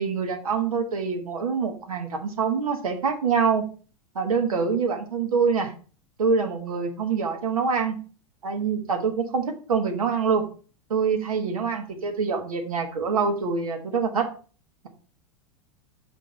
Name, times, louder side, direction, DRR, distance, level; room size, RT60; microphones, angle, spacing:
voice 1, 0.0-3.6 4.1-5.7 6.2-8.0 8.4-10.4 10.9-14.3, right 5 dB, 85° right, 4 dB, 1.3 m, -25 dB
5.3 x 3.7 x 5.4 m, 0.39 s
hypercardioid pair, 100°, 18 cm